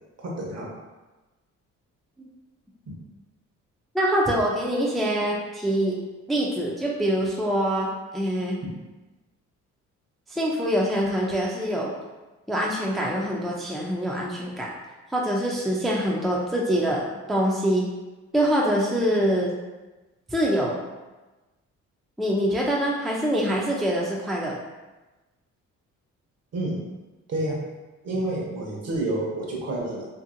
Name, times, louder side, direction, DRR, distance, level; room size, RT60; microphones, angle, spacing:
voice 1, 0.2-0.7 26.5-26.8 27.3-27.6 28.0-30.1, right 1 dB, 55° right, -3 dB, 0.9 m, -29 dB
voice 2, 3.9-6.0 6.3-7.9 8.1-8.6 10.3-11.9 12.5-14.7 15.1-17.0 17.3-17.9 18.3-19.5 20.3-20.8 22.2-24.5, equal, ahead, -3 dB, 0.4 m, -24 dB
2.7 x 2.7 x 2.5 m, 1.1 s
cardioid pair, 90°, 30 cm